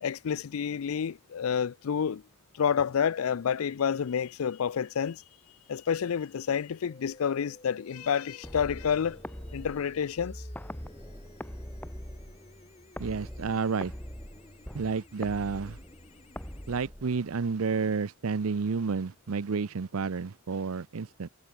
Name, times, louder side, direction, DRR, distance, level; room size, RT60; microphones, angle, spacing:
voice 1, 0.0-2.2 2.5-5.2 5.7-9.2 9.5-10.4, left 7 dB, 85° left, 0.4 m, -29 dB
sound 1, 6.9-16.9, left 2 dB, 30° left, 1.8 m, -56 dB
sound 2, 8.4-17.5, equal, 10° left, 2.0 m, -43 dB
voice 2, 13.0-13.9 14.7-15.8 16.7-21.3, right 5 dB, 90° right, 0.6 m, -30 dB
head